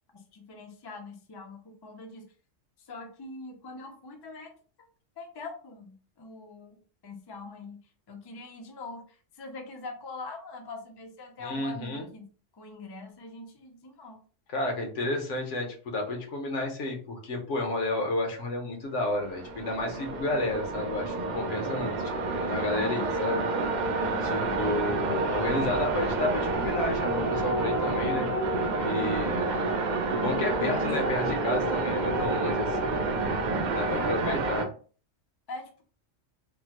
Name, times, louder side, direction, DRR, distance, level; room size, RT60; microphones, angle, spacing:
voice 1, 0.3-2.2 2.8-4.5 5.2-7.8 8.1-12.2 12.5-14.2 22.7-23.2 24.3-24.8 30.6-31.0 33.7-34.4 35.5-35.8, left 3 dB, 40° left, 3 dB, 0.3 m, -43 dB
voice 2, 11.4-12.1 14.5-23.4 24.0-28.3 28.8-29.5 30.1-32.9 33.7-34.6, left 2 dB, 70° left, 2 dB, 1.1 m, -31 dB
sound 1, 19.1-34.6, right 2 dB, 75° right, 0.4 m, -29 dB
3.6 x 2.0 x 2.9 m, 0.41 s
omnidirectional pair, 1.3 m